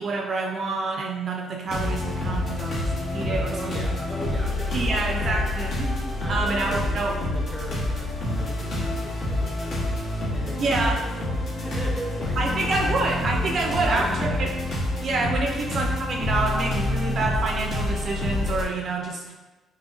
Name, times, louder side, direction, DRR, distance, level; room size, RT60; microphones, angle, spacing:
voice 1, 0.0-3.7 4.7-6.0 6.3-7.1 10.6-11.0 12.4-14.5 15.0-19.3, right 3 dB, 40° right, 1 dB, 0.5 m, -27 dB
sound 1, 1.7-18.6, left 2 dB, 50° left, 1.2 m, -27 dB
voice 2, 3.3-5.8 6.2-9.9 10.3-12.7 13.5-14.3 15.4-15.6, equal, ahead, -2 dB, 0.7 m, -38 dB
6.2 x 2.7 x 2.6 m, 1.2 s
cardioid pair, 150°, 0 cm